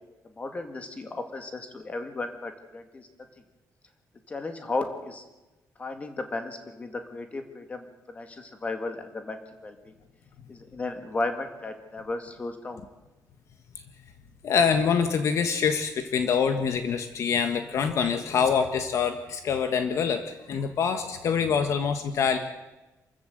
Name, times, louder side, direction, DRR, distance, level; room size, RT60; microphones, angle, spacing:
voice 1, 0.4-3.1 4.3-5.2 5.8-9.9 10.5-12.8, left 2 dB, 20° left, 6 dB, 2.2 m, -34 dB
voice 2, 14.4-22.4, left 6 dB, 55° left, 7 dB, 1.5 m, -25 dB
28.0 x 14.0 x 8.0 m, 1.1 s
cardioid pair, 180°, 6 cm